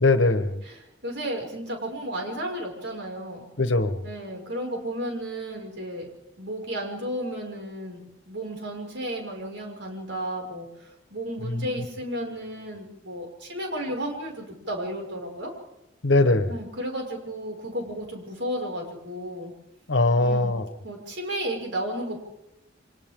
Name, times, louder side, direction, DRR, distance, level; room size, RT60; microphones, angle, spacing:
voice 1, 0.0-0.6 3.6-4.0 11.4-11.7 16.0-16.5 19.9-20.7, left 2 dB, 85° left, 10 dB, 1.3 m, -21 dB
voice 2, 0.6-3.5 4.0-6.1 6.4-15.5 16.5-19.5 20.1-20.5 20.8-22.2, right 1 dB, 70° right, 0 dB, 6.0 m, -33 dB
30.0 x 24.5 x 3.8 m, 0.86 s
head